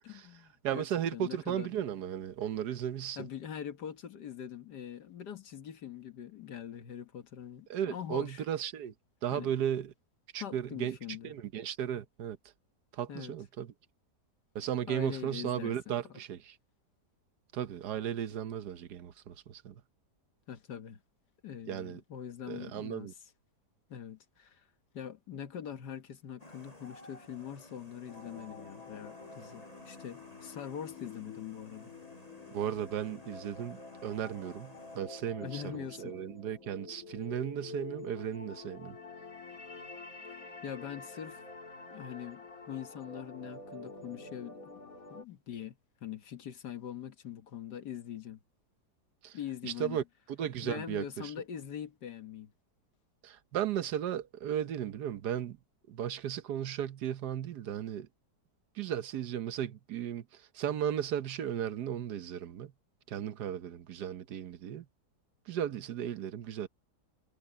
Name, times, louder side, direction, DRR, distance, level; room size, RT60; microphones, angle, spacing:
voice 1, 0.1-1.8 3.2-8.4 9.3-9.5 10.4-11.3 13.1-13.3 14.9-16.0 20.5-21.0 21.4-23.2 23.9-24.7 24.9-31.9 35.4-36.2 40.6-41.4 41.9-44.7 45.1-48.4 49.3-50.0 50.6-52.5, left 9 dB, 85° left, 1.9 m, -43 dB
voice 2, 0.6-3.2 7.7-8.9 9.2-9.9 10.3-11.0 11.2-12.4 12.9-13.7 14.5-16.5 17.5-19.7 21.7-22.0 22.5-23.1 32.5-39.0 49.2-49.4 49.6-50.0 50.3-51.3 53.2-55.6 55.9-58.1 58.8-60.2 60.5-62.7 63.1-64.8 65.5-66.7, right 10 dB, 80° right, 1.5 m, -35 dB
sound 1, 26.4-35.0, left 1 dB, 20° left, 6.0 m, -56 dB
sound 2, 28.1-45.2, left 3 dB, 60° left, 3.5 m, -48 dB
omnidirectional pair, 1.7 m